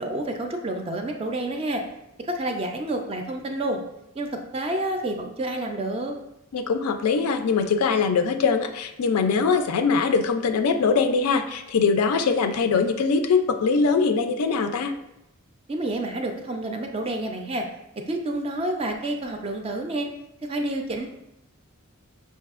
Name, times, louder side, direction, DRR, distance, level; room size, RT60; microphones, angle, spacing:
voice 1, 0.0-1.8 2.3-3.8 4.2-4.3 4.5-6.1 15.7-17.6 18.1-20.1 20.4-21.1, right 1 dB, 25° right, 3 dB, 0.3 m, -29 dB
voice 2, 6.5-14.9, left 5 dB, 85° left, 7 dB, 0.4 m, -22 dB
5.7 x 2.6 x 2.4 m, 0.87 s
head